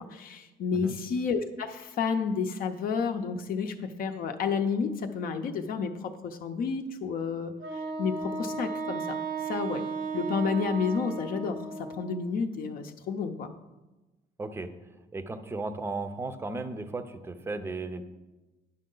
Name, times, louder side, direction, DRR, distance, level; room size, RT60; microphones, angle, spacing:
voice 1, 0.0-9.2 9.4-9.8 10.1-13.5, left 5 dB, 60° left, 5 dB, 0.6 m, -31 dB
Wind instrument woodwind instrument, 7.6-12.2, right 4 dB, 85° right, 1.1 m, -35 dB
voice 2, 14.4-14.7 15.1-18.1, right 3 dB, 15° right, 10 dB, 0.5 m, -35 dB
10.0 x 5.4 x 3.8 m, 1.1 s
cardioid pair, 110°, 17 cm